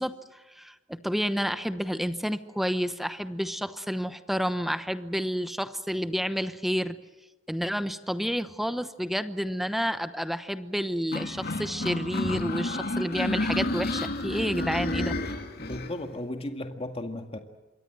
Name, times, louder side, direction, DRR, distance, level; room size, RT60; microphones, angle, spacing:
voice 1, 0.0-7.0 7.5-15.2, equal, ahead, 10 dB, 1.0 m, -30 dB
sound 1, 11.1-15.9, left 2 dB, 55° left, 2.2 m, -30 dB
voice 2, 15.6-17.4, left 1 dB, 30° left, 5 dB, 2.0 m, -35 dB
27.0 x 23.5 x 7.7 m, 1.1 s
head